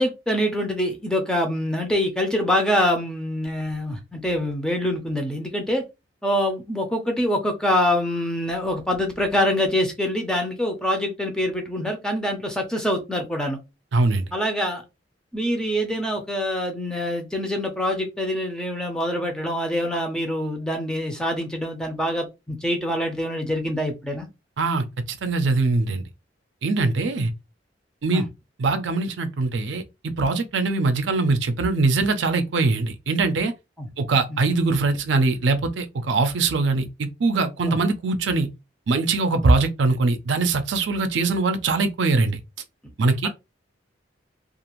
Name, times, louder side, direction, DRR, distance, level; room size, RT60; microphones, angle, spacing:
voice 1, 0.0-5.8 6.2-13.6 14.3-14.8 15.3-24.3 28.1-28.2 33.8-33.9 34.3-34.4 37.7-37.8 39.3-39.4 43.2-43.3, left 1 dB, 5° left, 0.5 m, -25 dB
voice 2, 13.9-14.3 24.6-26.0 26.6-27.3 28.0-28.2 28.6-33.5 34.0-38.5 38.9-42.4 43.0-43.3, right 3 dB, 70° right, 0.5 m, -22 dB
2.4 x 2.4 x 3.0 m
head